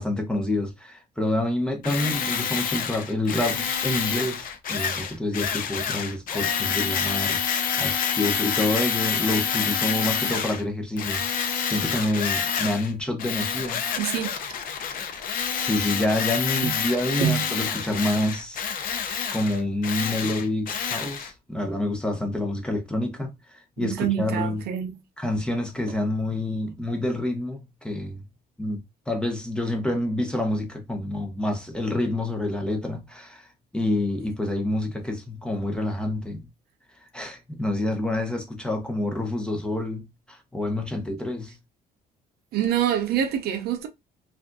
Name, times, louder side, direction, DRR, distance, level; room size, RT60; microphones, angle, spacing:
voice 1, 0.0-11.2 11.7-13.8 15.0-15.2 15.6-19.0 19.3-24.7 25.2-28.2 28.6-36.5 36.9-41.6, left 1 dB, 5° left, 0.7 m, -28 dB
Tools, 1.8-10.6 11.0-12.9 13.2-21.3, left 7 dB, 55° left, 0.6 m, -28 dB
voice 2, 14.0-14.3 16.6-16.7 17.2-17.4 23.8-25.0 42.5-43.9, right 10 dB, 70° right, 0.6 m, -25 dB
3.3 x 2.5 x 2.6 m
cardioid pair, 110°, 17 cm